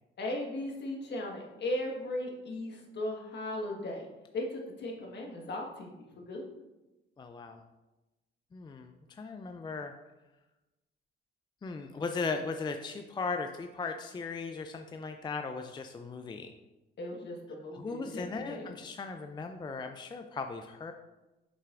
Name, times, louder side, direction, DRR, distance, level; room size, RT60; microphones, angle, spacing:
voice 1, 0.2-4.1 4.3-6.5 17.0-18.7, left 1 dB, 60° left, 0 dB, 1.4 m, -37 dB
voice 2, 7.2-7.6 8.5-9.9 11.6-16.5 17.7-20.9, left 4 dB, 20° left, 6 dB, 0.4 m, -37 dB
6.7 x 5.6 x 2.5 m, 1.1 s
cardioid pair, 90°, 20 cm